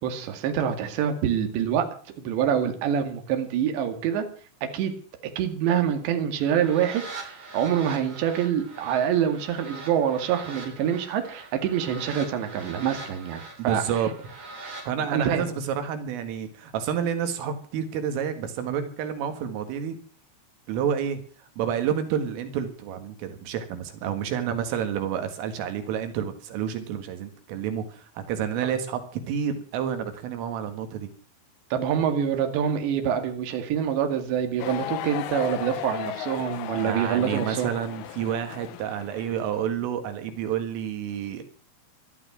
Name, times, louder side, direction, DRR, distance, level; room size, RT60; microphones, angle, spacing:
voice 1, 0.0-1.9 2.2-4.3 4.7-4.9 5.4-13.8 15.1-15.5 28.6-28.7 31.7-37.7, right 8 dB, 65° right, 6 dB, 4.2 m, -26 dB
sound 1, 6.4-14.9, right 3 dB, 40° right, 5.4 m, -42 dB
voice 2, 13.6-14.1 14.9-20.0 20.7-31.1 36.8-41.4, right 8 dB, 85° right, 8 dB, 4.4 m, -29 dB
sound 2, 34.6-39.5, left 14 dB, 80° left, 2.3 m, -36 dB
18.0 x 12.5 x 6.2 m, 0.43 s
omnidirectional pair, 5.7 m